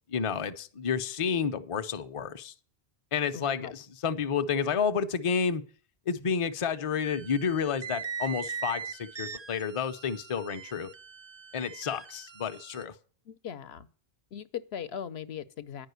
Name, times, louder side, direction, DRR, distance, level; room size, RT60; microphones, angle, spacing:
voice 1, 0.1-2.5 3.1-5.6 6.1-10.9 11.5-12.9, left 6 dB, 40° left, 0.6 m, -30 dB
voice 2, 3.3-3.7 13.3-13.9 14.3-15.9, left 8 dB, 75° left, 1.0 m, -39 dB
sound 1, 7.0-12.8, right 6 dB, 40° right, 0.4 m, -41 dB
9.9 x 5.6 x 8.0 m
omnidirectional pair, 1.1 m